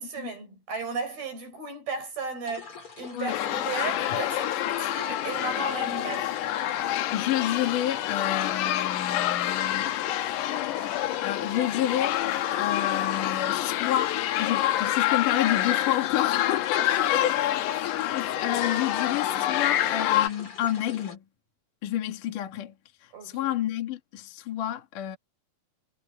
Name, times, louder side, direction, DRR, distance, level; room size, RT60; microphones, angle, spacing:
voice 1, 0.0-6.3 16.7-17.1 23.1-23.5, right 4 dB, 60° right, 9.2 m, -35 dB
sound 1, 2.4-21.2, left 5 dB, 30° left, 5.0 m, -44 dB
sound 2, 3.3-20.3, left 13 dB, 90° left, 3.4 m, -27 dB
voice 2, 7.1-10.0 11.2-17.3 18.1-21.2 21.8-22.7 23.0-25.2, left 12 dB, 55° left, 3.2 m, -29 dB
omnidirectional pair, 4.8 m